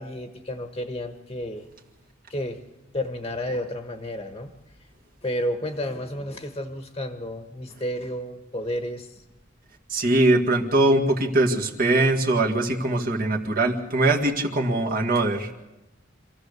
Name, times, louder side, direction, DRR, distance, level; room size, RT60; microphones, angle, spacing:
voice 1, 0.0-1.7 2.3-2.6 2.9-4.5 5.2-9.2, equal, 25° left, 6 dB, 1.2 m, -31 dB
voice 2, 9.9-15.5, right 2 dB, 45° right, 2 dB, 2.0 m, -22 dB
26.5 x 15.0 x 6.8 m, 1.0 s
head